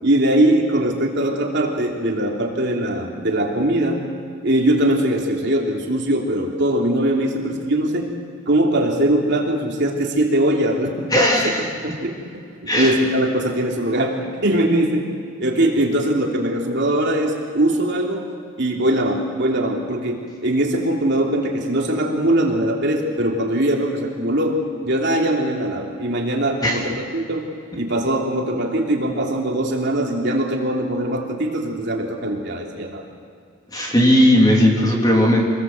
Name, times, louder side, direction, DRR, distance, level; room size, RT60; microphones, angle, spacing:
voice 1, 0.0-4.0 4.4-8.1 8.5-11.5 11.8-12.4 12.7-18.2 18.6-27.5 27.7-33.0, right 1 dB, 55° right, -1 dB, 3.2 m, -21 dB
voice 2, 11.1-11.7 12.7-13.0 26.6-26.8 33.7-35.5, equal, 20° left, -1 dB, 3.3 m, -16 dB
26.5 x 20.5 x 7.9 m, 2.3 s
head